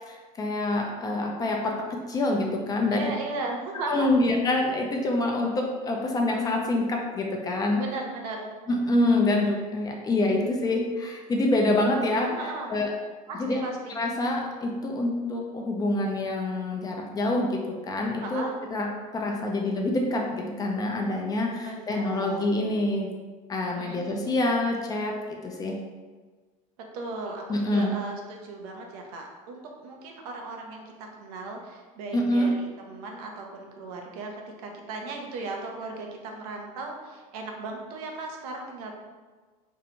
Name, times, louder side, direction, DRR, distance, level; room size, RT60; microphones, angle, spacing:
voice 1, 0.1-3.1 3.9-7.8 8.7-12.3 12.7-12.9 13.4-13.6 14.0-18.4 18.7-18.9 19.1-23.1 23.5-25.2 25.4-25.8 27.5-27.9 32.1-32.5, left 2 dB, 20° left, 1 dB, 0.3 m, -26 dB
voice 2, 2.9-4.1 7.7-8.5 12.2-12.7 13.3-14.0 18.2-18.6 21.6-22.5 23.8-24.4 26.9-38.9, right 3 dB, 85° right, 1 dB, 0.5 m, -37 dB
2.6 x 2.1 x 2.8 m, 1.4 s
supercardioid pair, 120°, 19 cm